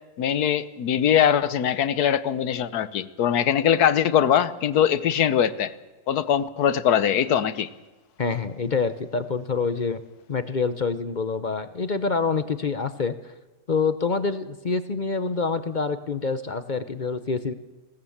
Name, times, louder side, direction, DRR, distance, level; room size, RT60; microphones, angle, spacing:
voice 1, 0.2-5.7 6.1-7.7, left 9 dB, 70° left, 15 dB, 1.4 m, -22 dB
voice 2, 8.2-10.0 10.3-13.1 13.7-17.5, left 4 dB, 40° left, 12 dB, 0.7 m, -26 dB
20.5 x 17.5 x 7.2 m, 1.2 s
omnidirectional pair, 1.7 m